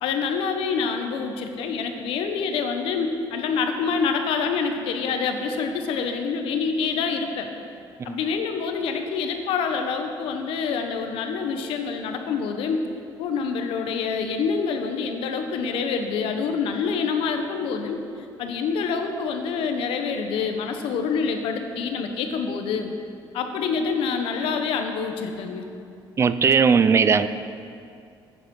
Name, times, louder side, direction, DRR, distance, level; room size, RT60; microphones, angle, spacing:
voice 1, 0.0-7.5 8.0-12.8 13.2-18.0 18.4-22.9 23.3-25.7, left 5 dB, 85° left, 5 dB, 1.0 m, -26 dB
voice 2, 26.2-27.3, right 6 dB, 30° right, 12 dB, 0.4 m, -18 dB
9.6 x 9.0 x 5.4 m, 2.4 s
cardioid pair, 130°, 9 cm